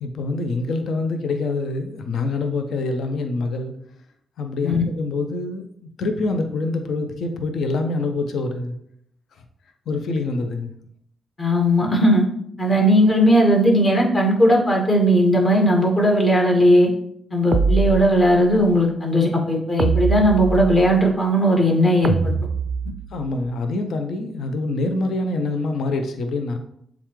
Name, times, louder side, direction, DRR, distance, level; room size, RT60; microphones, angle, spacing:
voice 1, 0.0-3.7 4.4-8.8 9.9-10.7 23.1-26.6, left 3 dB, 70° left, 6 dB, 0.5 m, -25 dB
voice 2, 11.4-12.2 12.6-16.9 17.3-22.3, equal, 40° left, -1 dB, 1.8 m, -17 dB
sound 1, 17.5-18.6 19.8-21.1 22.0-23.3, right 4 dB, 55° right, 0.3 m, -23 dB
7.1 x 2.4 x 3.1 m, 0.69 s
hypercardioid pair, 45°, 0 cm